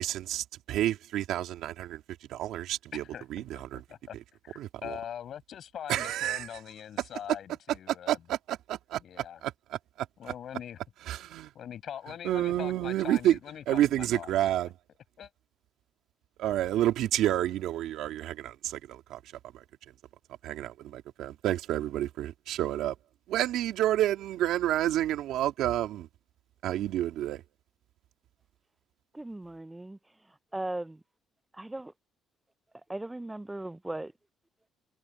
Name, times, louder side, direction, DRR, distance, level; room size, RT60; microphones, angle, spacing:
voice 1, 0.0-3.0 3.3-3.8 4.6-5.0 5.9-6.5 7.9-10.1 11.0-11.5 12.2-13.4 13.7-14.8 16.4-19.6 20.4-23.0 23.3-26.1 26.6-27.4, right 13 dB, 80° right, 2.9 m, -30 dB
voice 2, 2.9-3.2 3.5-3.6 3.9-4.2 4.4-8.2 9.0-9.4 10.2-10.8 11.5-14.3 15.2-15.3, left 9 dB, 55° left, 7.3 m, -42 dB
voice 3, 29.2-30.0 30.5-31.0 31.6-31.9 32.9-34.1, right 2 dB, 10° right, 0.4 m, -37 dB
cardioid pair, 110°, 0 cm